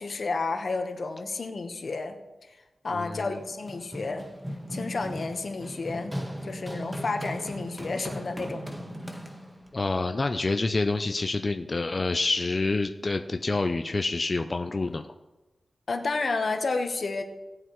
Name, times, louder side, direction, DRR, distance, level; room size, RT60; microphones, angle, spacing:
voice 1, 0.0-2.5 2.8-4.2 4.7-6.2 6.4-8.7 15.9-17.2, left 3 dB, 60° left, 5 dB, 1.1 m, -31 dB
voice 2, 2.9-3.4 9.7-15.1, left 3 dB, 35° left, 6 dB, 0.5 m, -27 dB
Run, 3.3-9.7, equal, 10° right, 1.3 m, -37 dB
18.5 x 7.8 x 3.1 m, 1.1 s
wide cardioid pair, 80°, 0 cm